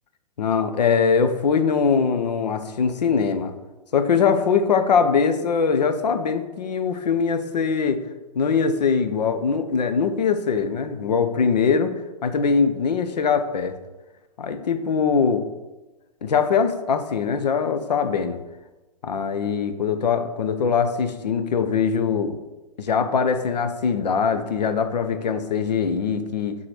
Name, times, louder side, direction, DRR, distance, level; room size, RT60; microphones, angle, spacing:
voice 1, 0.4-3.5 3.9-8.0 8.3-11.9 12.2-13.8 14.4-15.4 16.2-18.4 19.0-22.4 22.8-26.6, left 6 dB, 85° left, 9 dB, 0.8 m, -22 dB
5.9 x 3.8 x 4.8 m, 1.1 s
hypercardioid pair, 125°, 21 cm